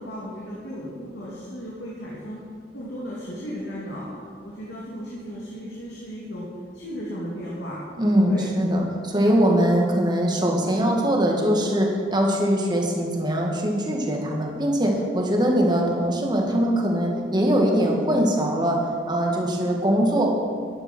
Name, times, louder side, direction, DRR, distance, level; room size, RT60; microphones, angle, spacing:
voice 1, 0.0-2.4 2.7-6.5 6.7-7.8 8.3-8.5 19.4-19.6, equal, 80° left, -5 dB, 2.6 m, -35 dB
voice 2, 8.0-18.8 19.1-20.3, equal, 25° right, 0 dB, 1.9 m, -22 dB
12.0 x 10.5 x 6.1 m, 2.2 s
head